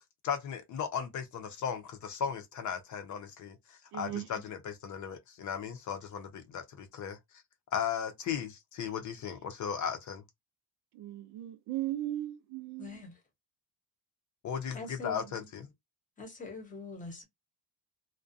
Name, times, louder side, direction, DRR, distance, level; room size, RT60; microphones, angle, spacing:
voice 1, 0.2-7.2 7.7-10.2 14.4-15.7, left 7 dB, 50° left, 0.6 m, -36 dB
voice 2, 3.9-4.3 10.9-13.0, right 14 dB, 75° right, 0.6 m, -37 dB
voice 3, 12.8-13.1 14.7-15.2 16.2-17.2, left 3 dB, 20° left, 0.8 m, -43 dB
2.4 x 2.2 x 2.6 m
cardioid pair, 160°, 40 cm